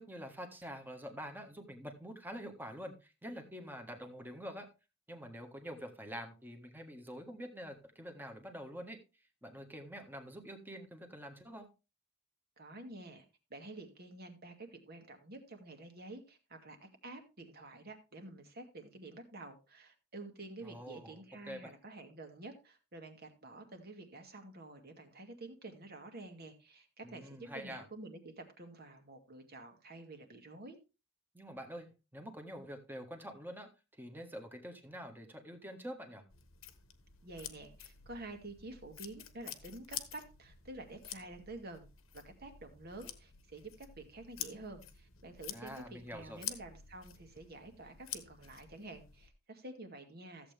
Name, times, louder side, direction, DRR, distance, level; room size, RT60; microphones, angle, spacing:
voice 1, 0.0-4.7 5.1-9.0 9.4-11.7 20.6-21.2 21.4-21.7 27.0-27.8 31.3-33.7 34.0-36.2 45.5-46.4, equal, 10° right, 5 dB, 1.6 m, -46 dB
voice 2, 12.6-13.2 13.5-30.8 37.2-41.9 42.1-50.5, right 2 dB, 50° right, 6 dB, 2.1 m, -49 dB
sound 1, 36.3-49.3, left 10 dB, 85° left, 1.3 m, -49 dB
14.5 x 7.8 x 3.4 m, 0.29 s
head